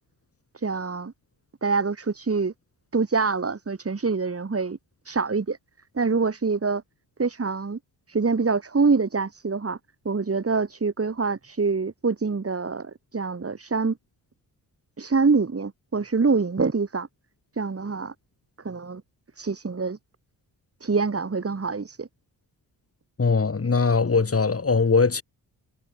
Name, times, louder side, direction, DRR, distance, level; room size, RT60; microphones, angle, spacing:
voice 1, 0.5-1.1 1.6-2.5 2.9-4.8 5.0-5.6 5.9-6.8 7.2-7.8 8.1-9.8 10.0-14.0 15.0-17.1 17.6-18.1 18.6-19.0 19.4-20.0 20.8-22.1, right 4 dB, 35° right, 7.7 m, -25 dB
voice 2, 23.2-25.2, left 4 dB, 35° left, 4.8 m, -21 dB
cardioid pair, 65°, 39 cm